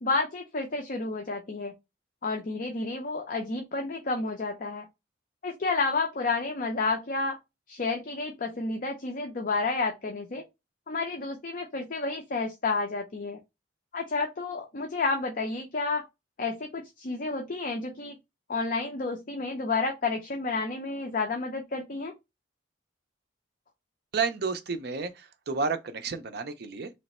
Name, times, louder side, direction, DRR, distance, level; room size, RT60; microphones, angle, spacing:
voice 1, 0.0-1.7 2.2-4.9 5.4-7.4 7.7-10.4 10.9-13.4 13.9-16.1 16.4-18.2 18.5-22.1, left 3 dB, 45° left, 0.5 m, -30 dB
voice 2, 24.1-26.9, right 4 dB, 55° right, 0.5 m, -31 dB
3.2 x 2.9 x 4.2 m
head